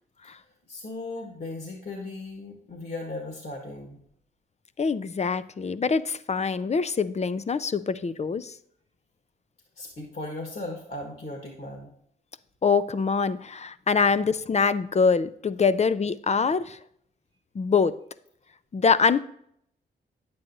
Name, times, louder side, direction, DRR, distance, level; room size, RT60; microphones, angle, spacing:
voice 1, 0.7-4.0 9.8-11.9, left 2 dB, 50° left, 1 dB, 1.7 m, -37 dB
voice 2, 4.8-8.5 12.6-16.8 17.5-18.0 18.7-19.2, left 5 dB, 35° left, 14 dB, 0.5 m, -24 dB
9.5 x 7.8 x 2.7 m, 0.69 s
supercardioid pair, 50°, 20 cm